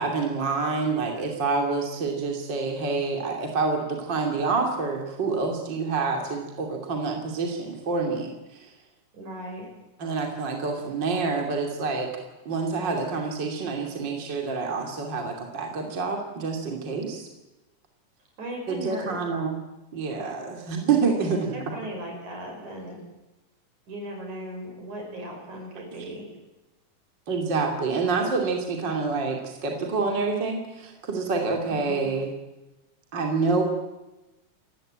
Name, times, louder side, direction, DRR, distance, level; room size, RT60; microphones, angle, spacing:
voice 1, 0.0-8.7 10.0-12.1 12.4-17.3 18.7-19.6 19.9-21.5 27.3-32.3 33.1-33.6, right 4 dB, 35° right, 2 dB, 3.0 m, -27 dB
voice 2, 9.1-9.7 18.4-19.2 21.2-23.0 23.9-26.3 31.7-32.1, right 1 dB, 60° right, 1 dB, 7.6 m, -37 dB
29.0 x 15.5 x 8.9 m, 1.0 s
omnidirectional pair, 3.8 m